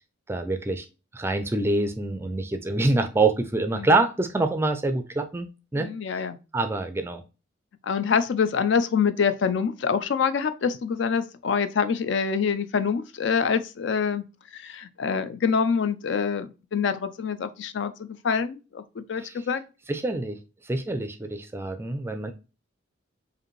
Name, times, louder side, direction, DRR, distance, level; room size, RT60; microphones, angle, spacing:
voice 1, 0.3-0.9 1.1-6.2 6.5-7.2 19.2-19.5 19.9-22.3, right 2 dB, 10° right, 0.4 m, -26 dB
voice 2, 5.8-6.4 7.8-14.2 14.5-19.6, left 6 dB, 60° left, 0.4 m, -26 dB
4.9 x 2.6 x 3.1 m
head